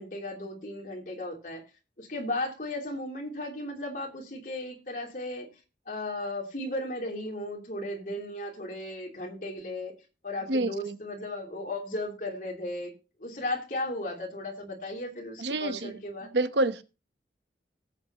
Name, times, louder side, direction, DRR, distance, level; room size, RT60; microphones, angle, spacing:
voice 1, 0.0-1.6 2.0-5.5 5.9-9.9 10.2-12.9 13.2-16.3, left 1 dB, 50° left, 3.0 m, -35 dB
voice 2, 10.5-11.0 15.4-15.9 16.3-16.8, right 2 dB, 80° right, 0.9 m, -27 dB
17.5 x 8.1 x 2.9 m
head